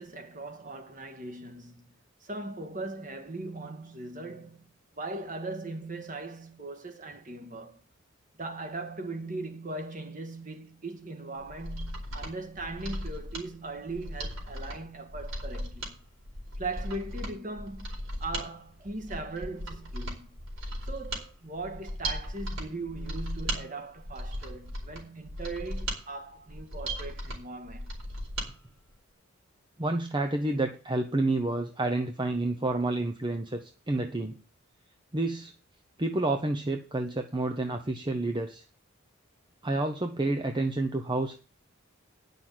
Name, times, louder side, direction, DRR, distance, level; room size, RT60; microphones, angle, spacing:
voice 1, 0.0-1.8 2.2-4.7 5.0-7.8 8.3-16.0 16.6-17.9 18.2-20.4 20.8-28.0, right 2 dB, 40° right, 1.8 m, -39 dB
Mechanisms, 11.4-28.5 28.8-28.9, right 1 dB, 75° right, 4.5 m, -37 dB
voice 2, 29.8-34.4 35.1-35.5 36.0-38.6 39.6-41.4, right 2 dB, 20° right, 0.9 m, -29 dB
10.0 x 6.7 x 7.8 m
head